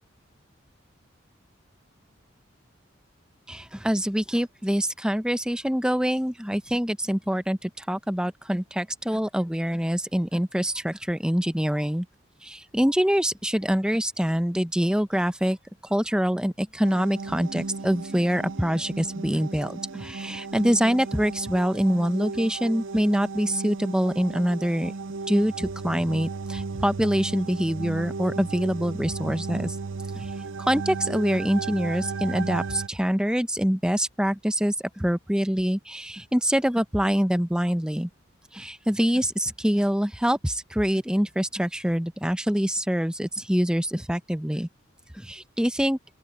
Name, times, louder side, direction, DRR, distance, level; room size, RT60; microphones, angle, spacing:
voice 1, 3.5-12.1 12.4-15.6 15.8-24.9 25.3-29.8 30.2-30.3 30.6-38.1 38.5-44.7 45.1-46.0, equal, 5° right, 0.7 m, -25 dB
sound 1, 16.8-32.9, right 4 dB, 80° right, 0.6 m, -35 dB
sound 2, 17.3-22.6, right 1 dB, 55° right, 3.1 m, -49 dB
open air
head